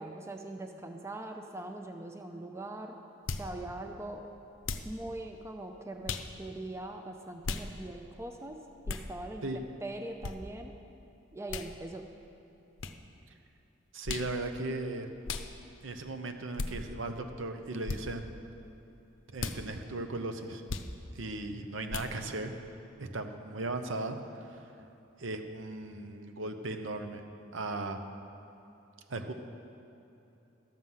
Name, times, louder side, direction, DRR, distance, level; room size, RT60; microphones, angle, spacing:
voice 1, 0.0-3.0 3.3-4.3 4.8-8.6 8.9-9.5 9.8-10.7 11.3-12.1, right 2 dB, 15° right, 4 dB, 0.5 m, -41 dB
sound 1, 3.3-3.5 4.6-4.9 6.0-6.3 7.4-7.7 8.8-9.1 10.2-10.4 11.5-11.7 12.8-13.0 14.0-14.3 15.2-15.5 16.6-16.7 17.8-18.0 19.4-19.6 20.7-20.9 21.9-22.1, left 4 dB, 75° left, 0.6 m, -35 dB
voice 2, 13.9-15.1 15.8-18.4 19.3-20.6 21.1-22.5 23.0-24.7 25.2-27.2 27.5-28.1 29.1-29.3, right 2 dB, 75° right, 6 dB, 0.8 m, -37 dB
12.0 x 7.7 x 5.6 m, 3.0 s
head